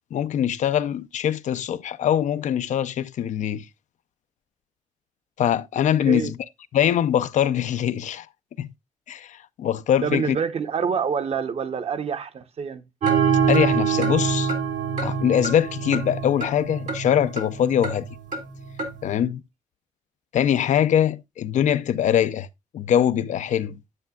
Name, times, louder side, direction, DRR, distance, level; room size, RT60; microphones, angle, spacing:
voice 1, 0.1-3.7 5.4-6.4 6.7-8.3 8.6-8.7 9.1-10.4 13.5-14.5 15.0-18.1 19.0-19.4 20.3-22.5 22.7-23.8, left 10 dB, 80° left, 0.5 m, -22 dB
voice 2, 10.0-12.8, right 6 dB, 55° right, 0.9 m, -27 dB
sound 1, 13.0-19.0, right 6 dB, 80° right, 1.9 m, -25 dB
9.7 x 8.1 x 2.3 m
cardioid pair, 110°, 12 cm